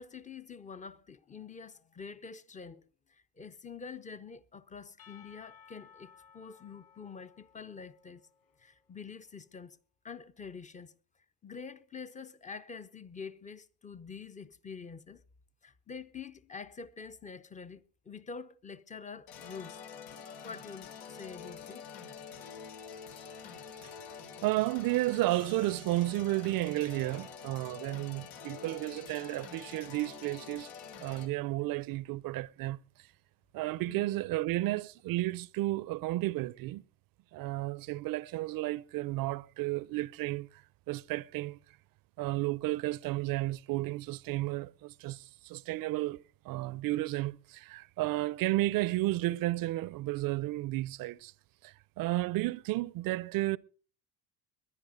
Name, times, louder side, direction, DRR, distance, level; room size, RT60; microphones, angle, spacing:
voice 1, 0.0-2.8 3.1-8.2 8.6-9.8 10.0-10.9 11.4-15.2 15.6-19.8 20.4-21.9 33.8-34.1, left 5 dB, 15° left, 0.6 m, -46 dB
Percussion / Church bell, 5.0-9.0, left 7 dB, 50° left, 3.4 m, -59 dB
sound 1, 19.3-31.3, left 6 dB, 85° left, 3.3 m, -47 dB
voice 2, 24.4-30.7 31.0-32.8 33.5-36.8 37.3-40.5 40.9-41.6 42.2-46.2 46.4-51.3 51.6-53.6, right 17 dB, 50° right, 0.6 m, -32 dB
21.0 x 9.9 x 5.0 m
cardioid pair, 135°, 45 cm